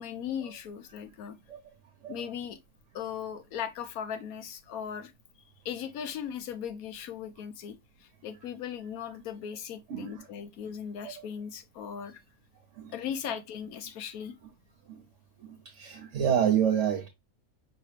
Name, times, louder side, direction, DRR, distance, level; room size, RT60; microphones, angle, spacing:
voice 1, 0.0-1.4 2.1-2.6 2.9-5.1 5.6-12.2 12.9-14.3, left 8 dB, 85° left, 1.1 m, -38 dB
voice 2, 9.9-10.3 11.0-11.3 12.7-12.9 14.9-15.0 15.4-17.1, right 9 dB, 60° right, 1.1 m, -29 dB
5.0 x 3.0 x 3.2 m
omnidirectional pair, 1.5 m